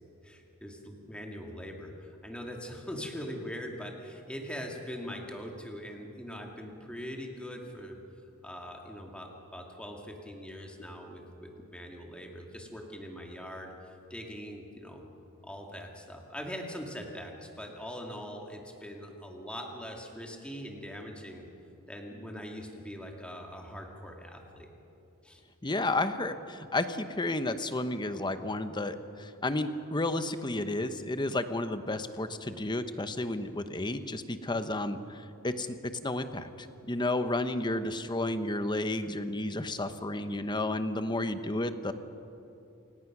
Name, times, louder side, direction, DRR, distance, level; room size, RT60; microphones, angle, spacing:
voice 1, 0.2-8.0 8.4-13.7 14.1-15.0 15.4-21.4 21.9-24.7 25.2-25.4, equal, 5° left, 1 dB, 2.3 m, -42 dB
voice 2, 25.6-35.8 36.0-41.9, left 2 dB, 20° left, 10 dB, 0.9 m, -32 dB
28.0 x 17.5 x 6.1 m, 2.8 s
head